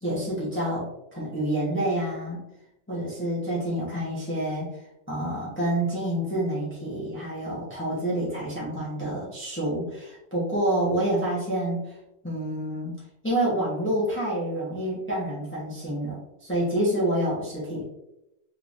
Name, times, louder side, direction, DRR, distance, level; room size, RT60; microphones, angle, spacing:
voice 1, 0.0-0.9 1.1-2.4 2.9-4.7 5.1-12.0 12.2-13.0 13.2-17.8, right 1 dB, 10° left, -8 dB, 1.0 m, -28 dB
3.7 x 3.2 x 2.5 m, 0.89 s
omnidirectional pair, 1.3 m